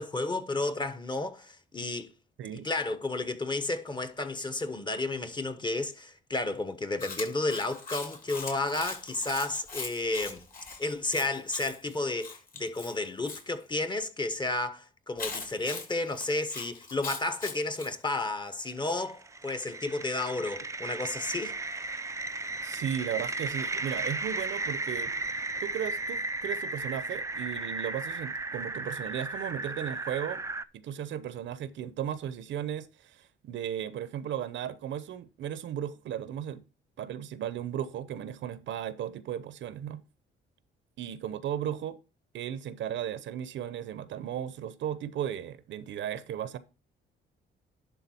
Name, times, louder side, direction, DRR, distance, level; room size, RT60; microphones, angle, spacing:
voice 1, 0.0-2.1 2.5-10.4 10.8-21.5, left 2 dB, 25° left, 1.1 m, -32 dB
Chewing mastication, 7.0-13.4 15.2-17.9, left 4 dB, 45° left, 2.9 m, -41 dB
sound 1, 18.7-30.6, right 2 dB, 15° right, 0.4 m, -35 dB
voice 2, 22.6-25.1 25.6-30.4 30.7-36.6 37.0-40.0 41.0-42.0 42.3-46.6, right 10 dB, 70° right, 0.7 m, -35 dB
11.0 x 3.8 x 4.3 m
cardioid pair, 90°, 20 cm